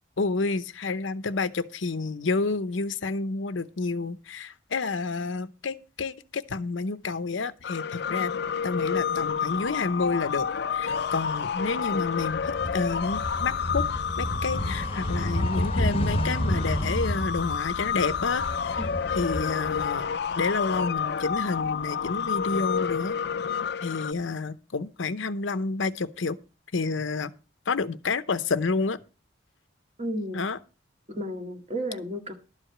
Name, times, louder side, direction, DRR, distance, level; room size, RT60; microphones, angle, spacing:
voice 1, 0.2-8.3 8.6-10.5 10.7-13.9 14.2-18.9 19.1-20.1 20.4-23.2 23.8-26.4 26.7-27.3 27.7-29.0 30.3-30.6, left 4 dB, 85° left, 0.8 m, -29 dB
sound 1, 7.6-24.1, left 7 dB, 60° left, 0.4 m, -30 dB
sound 2, 12.2-20.3 20.7-21.9, equal, 30° left, 0.9 m, -31 dB
voice 2, 30.0-30.4 31.1-32.3, equal, 35° right, 1.8 m, -33 dB
12.0 x 4.9 x 7.8 m
head